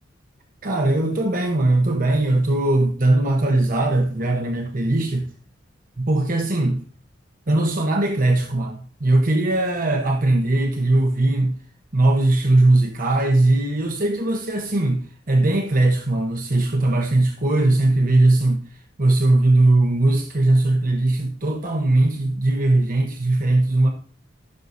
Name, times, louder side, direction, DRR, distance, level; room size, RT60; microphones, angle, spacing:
voice 1, 0.6-5.3 6.0-6.8 7.5-11.5 11.9-18.6 19.0-23.9, right 2 dB, 45° right, 1.1 m, -19 dB
15.5 x 6.4 x 2.7 m
head